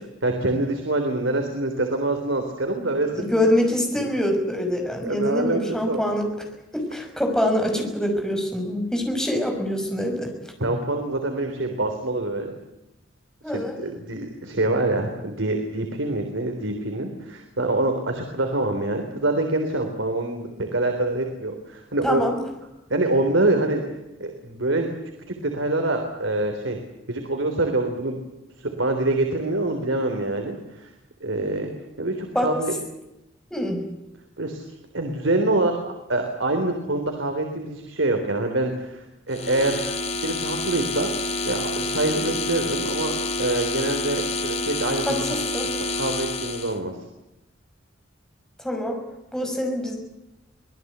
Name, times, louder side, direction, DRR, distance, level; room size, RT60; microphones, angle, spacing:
voice 1, 0.2-3.5 3.9-4.0 5.0-5.6 5.9-6.0 10.6-12.6 13.5-22.2 22.9-23.8 24.2-24.9 25.3-26.8 27.1-28.2 28.6-30.9 31.2-31.7 32.0-32.7 34.4-34.6 34.9-39.9 40.2-41.1 41.4-45.2 45.6-47.0, right 2 dB, 80° right, 4 dB, 3.6 m, -25 dB
voice 2, 3.1-6.4 6.7-10.3 13.4-13.8 22.0-22.4 32.3-32.5 33.5-33.8 42.1-42.2 45.1-45.7 48.6-49.0 49.3-50.0, left 1 dB, 5° left, 3 dB, 5.8 m, -25 dB
sound 1, 39.3-46.8, left 2 dB, 35° left, 2.3 m, -28 dB
25.5 x 19.5 x 8.1 m, 0.92 s
head